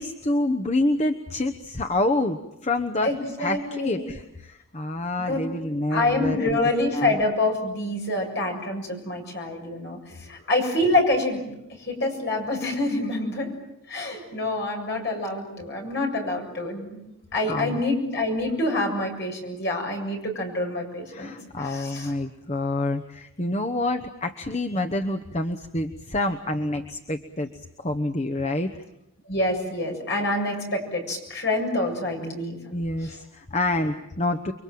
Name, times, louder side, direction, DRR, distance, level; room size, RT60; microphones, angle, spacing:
voice 1, 0.0-3.1 3.4-6.6 6.9-7.2 10.3-10.5 17.5-17.8 21.1-28.7 32.7-34.5, left 2 dB, 30° left, 5 dB, 1.0 m, -27 dB
voice 2, 3.0-4.0 5.2-5.5 5.9-13.5 13.9-17.0 17.3-22.1 29.3-32.6 33.0-33.2, left 2 dB, 55° left, 1 dB, 7.3 m, -27 dB
30.0 x 23.5 x 7.7 m, 0.86 s
head